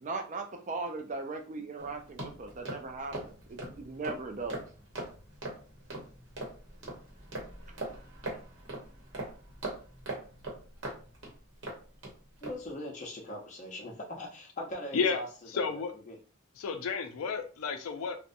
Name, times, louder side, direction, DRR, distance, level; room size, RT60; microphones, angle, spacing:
voice 1, 0.0-4.6, right 3 dB, 35° right, 0.3 m, -38 dB
sound 1, 1.8-12.1 12.4-12.7, right 2 dB, 55° right, 0.9 m, -41 dB
voice 2, 12.4-15.3 15.5-16.2, left 1 dB, 35° left, 0.6 m, -41 dB
voice 3, 15.5-15.9 16.6-18.2, left 5 dB, 80° left, 0.4 m, -31 dB
2.6 x 2.1 x 2.5 m
head